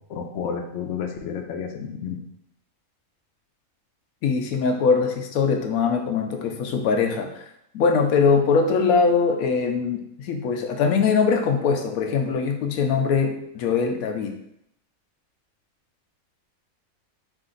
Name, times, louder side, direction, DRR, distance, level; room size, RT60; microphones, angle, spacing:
voice 1, 0.0-2.2, left 7 dB, 70° left, 4 dB, 0.8 m, -31 dB
voice 2, 4.2-7.4 7.7-14.4, left 5 dB, 85° left, 4 dB, 1.1 m, -22 dB
4.9 x 2.5 x 3.8 m, 0.76 s
omnidirectional pair, 1.4 m